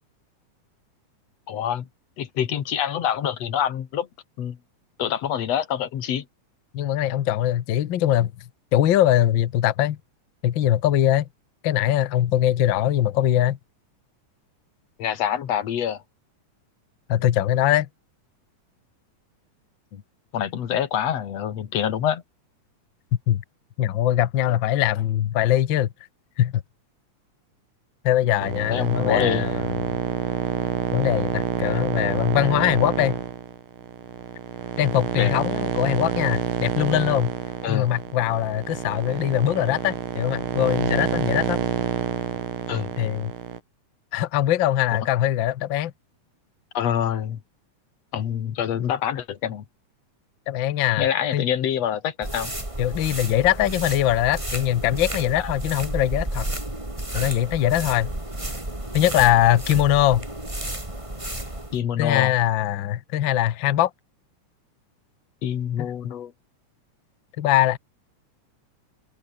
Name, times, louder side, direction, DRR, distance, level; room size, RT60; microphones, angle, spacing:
voice 1, 1.5-1.9 2.2-4.1 4.4-4.6 5.0-6.3 15.0-16.0 19.9-20.0 20.3-22.2 28.4-29.5 35.2-35.4 37.6-37.9 42.7-42.9 46.7-47.4 48.1-49.6 51.0-52.5 55.4-55.5 61.7-62.4 65.4-66.3, left 9 dB, 60° left, 2.6 m, -26 dB
voice 2, 6.7-8.3 8.7-10.0 10.4-11.3 11.6-13.6 17.1-17.9 23.3-23.4 23.8-25.9 26.4-26.6 28.0-30.0 30.9-33.2 34.8-37.3 37.7-41.6 43.0-43.3 44.1-45.9 50.5-51.0 51.3-51.4 52.8-56.5 57.1-58.1 58.9-60.2 62.0-63.9 65.8-65.9 67.4-67.8, left 12 dB, 75° left, 1.0 m, -22 dB
sound 1, 28.4-43.6, right 10 dB, 85° right, 3.3 m, -28 dB
sound 2, 52.2-61.8, right 1 dB, 10° right, 3.7 m, -32 dB
omnidirectional pair, 3.6 m